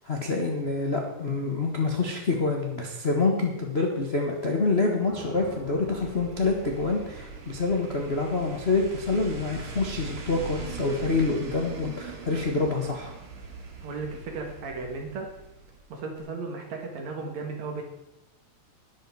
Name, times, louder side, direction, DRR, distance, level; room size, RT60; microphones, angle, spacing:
voice 1, 0.0-13.1, left 3 dB, 40° left, 0 dB, 0.8 m, -27 dB
sound 1, 5.1-9.1, left 2 dB, 15° left, 5.9 m, -47 dB
sound 2, 5.6-15.9 16.2-16.3, right 4 dB, 75° right, 3.5 m, -41 dB
voice 2, 13.8-15.3 15.9-17.8, right 4 dB, 60° right, 2 dB, 3.1 m, -35 dB
12.5 x 11.0 x 4.8 m, 0.95 s
omnidirectional pair, 3.6 m